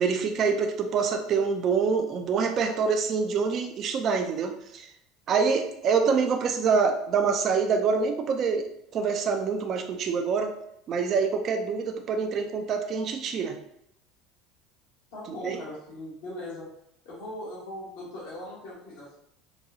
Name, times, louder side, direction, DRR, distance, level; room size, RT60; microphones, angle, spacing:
voice 1, 0.0-4.9 5.3-8.6 8.9-10.5 10.9-13.6 15.4-15.6, right 5 dB, 50° right, 5 dB, 0.4 m, -26 dB
voice 2, 15.1-16.7 17.0-19.1, left 1 dB, 75° left, -8 dB, 1.3 m, -39 dB
4.0 x 2.3 x 2.7 m, 0.76 s
hypercardioid pair, 85°, 0 cm